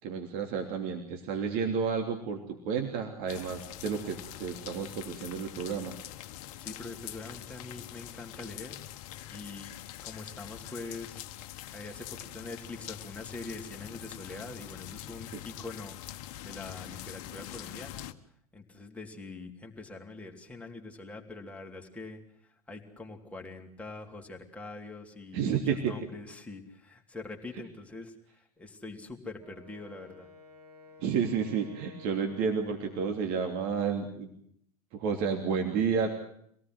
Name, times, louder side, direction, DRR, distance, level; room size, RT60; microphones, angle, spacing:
voice 1, 0.0-6.0 15.3-15.4 25.3-26.0 31.0-34.3 34.9-36.1, right 6 dB, 50° right, 4 dB, 3.1 m, -31 dB
sound 1, 3.3-18.1, left 13 dB, 55° left, 1.3 m, -44 dB
voice 2, 6.6-8.8 9.3-9.7 10.0-11.2 11.7-16.0 16.4-18.1 18.5-22.2 22.7-30.3, left 3 dB, 5° left, 1 dB, 3.4 m, -44 dB
Wind instrument woodwind instrument, 29.4-33.4, left 3 dB, 85° right, 4.3 m, -53 dB
25.5 x 18.0 x 7.9 m, 0.68 s
figure-of-eight pair, 90°, 19 cm